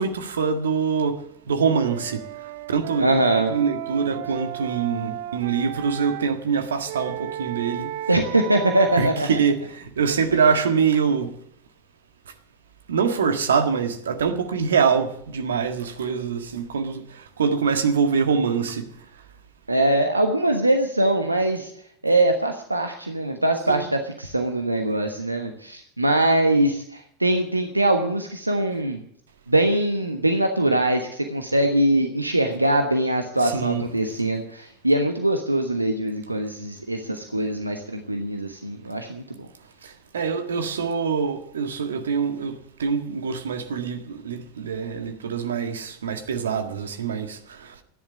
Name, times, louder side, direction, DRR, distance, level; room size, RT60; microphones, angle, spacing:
voice 1, 0.0-3.1 3.5-7.9 9.0-11.3 12.9-18.9 23.7-23.8 33.4-33.8 39.8-47.8, right 6 dB, 70° right, 1.7 m, -24 dB
Wind instrument woodwind instrument, 1.9-6.3 6.8-9.1, right 13 dB, 55° right, 0.6 m, -34 dB
voice 2, 3.0-3.6 8.1-9.3 19.7-21.7 22.0-29.0 29.5-39.5, right 1 dB, 90° right, 1.2 m, -22 dB
13.5 x 10.5 x 8.5 m
figure-of-eight pair, 85°, 0 cm